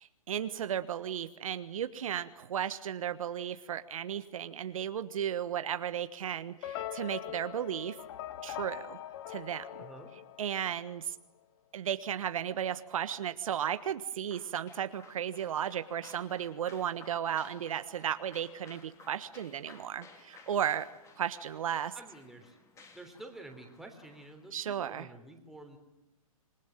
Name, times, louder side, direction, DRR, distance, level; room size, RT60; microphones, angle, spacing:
voice 1, 0.0-8.0 8.4-9.0 9.3-9.8 10.4-11.2 11.7-20.9 21.2-22.0 24.5-25.1, right 9 dB, 65° right, 12 dB, 1.4 m, -35 dB
sound 1, 6.6-10.9, left 12 dB, 45° left, 1.7 m, -42 dB
voice 2, 9.8-10.1 21.9-22.6 22.9-25.8, right 2 dB, ahead, 3 dB, 3.5 m, -49 dB
sound 2, 14.3-24.5, left 4 dB, 15° left, 3.5 m, -57 dB
27.0 x 19.5 x 9.1 m, 0.91 s
hypercardioid pair, 140°, 19 cm